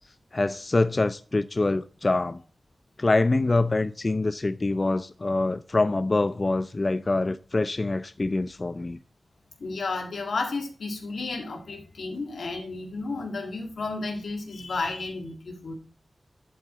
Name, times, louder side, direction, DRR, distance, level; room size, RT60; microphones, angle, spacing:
voice 1, 0.3-2.4 3.0-9.0, left 2 dB, 45° left, 0.4 m, -25 dB
voice 2, 9.6-15.7, left 3 dB, 85° left, 1.9 m, -32 dB
11.0 x 4.7 x 3.8 m
cardioid pair, 45°, 0 cm